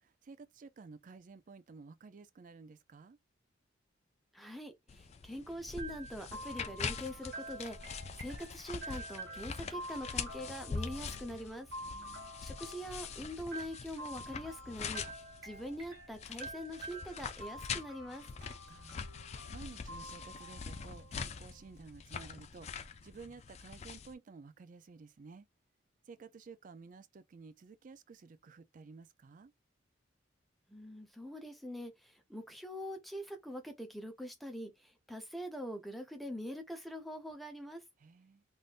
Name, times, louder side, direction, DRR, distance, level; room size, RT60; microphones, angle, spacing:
voice 1, 0.0-3.2 11.8-12.3 18.4-25.5 26.1-29.5 38.0-38.4, right 4 dB, 40° right, 0.3 m, -53 dB
voice 2, 4.3-11.7 12.4-18.2 30.7-37.8, equal, ahead, 0.7 m, -44 dB
sound 1, 4.9-24.1, left 5 dB, 35° left, 0.3 m, -44 dB
sound 2, 5.8-21.6, right 1 dB, 60° right, 1.6 m, -48 dB
3.6 x 2.6 x 2.4 m
head